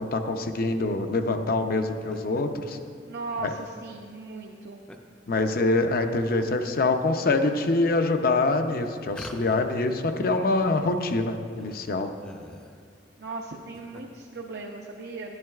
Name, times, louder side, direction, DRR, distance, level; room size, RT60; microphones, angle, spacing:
voice 1, 0.0-2.8 5.3-12.1, left 2 dB, 55° left, 6 dB, 0.6 m, -25 dB
sound 1, 1.8-2.4 2.8-2.9 3.5-3.7 4.9-5.0 5.3-6.3 6.8-7.3 7.9-8.0 9.1-10.1 10.3-10.4 10.6-10.7 11.2-11.3 11.5-12.9 13.5-14.0, left 1 dB, 5° left, 0.5 m, -46 dB
voice 2, 3.1-4.8 13.2-15.4, right 3 dB, 65° right, 1 dB, 0.6 m, -37 dB
11.0 x 10.5 x 2.4 m, 2.2 s
head